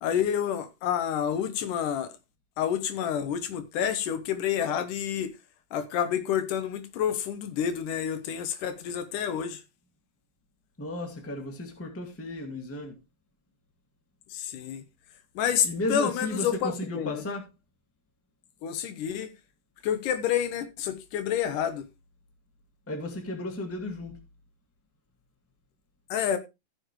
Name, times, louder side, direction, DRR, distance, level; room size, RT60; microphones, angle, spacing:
voice 1, 0.0-2.1 2.6-5.3 5.7-9.6 14.3-14.8 15.4-17.2 18.6-19.3 19.8-21.9 26.1-26.4, left 9 dB, 75° left, 2.6 m, -29 dB
voice 2, 10.8-12.9 15.6-17.4 22.9-24.2, left 2 dB, 5° left, 1.3 m, -34 dB
14.5 x 7.1 x 3.1 m
omnidirectional pair, 3.8 m